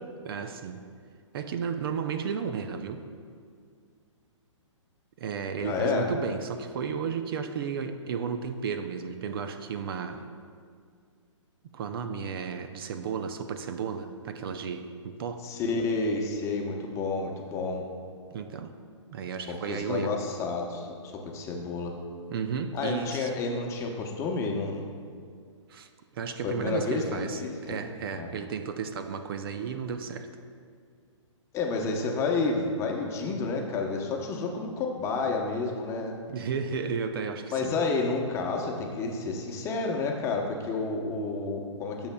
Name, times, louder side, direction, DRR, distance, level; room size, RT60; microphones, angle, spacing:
voice 1, 0.2-0.8 1.3-3.0 5.2-10.2 11.7-15.5 18.3-18.7 19.1-20.2 22.3-23.3 25.7-27.4 27.7-30.3 36.3-37.8, right 6 dB, 50° right, 8 dB, 0.5 m, -33 dB
voice 2, 5.6-6.1 15.4-17.8 19.5-21.9 22.7-24.8 26.4-27.9 28.1-28.5 31.5-36.2 37.5-42.1, left 3 dB, 15° left, 1 dB, 0.9 m, -30 dB
16.0 x 7.0 x 2.2 m, 2.1 s
hypercardioid pair, 145°, 16 cm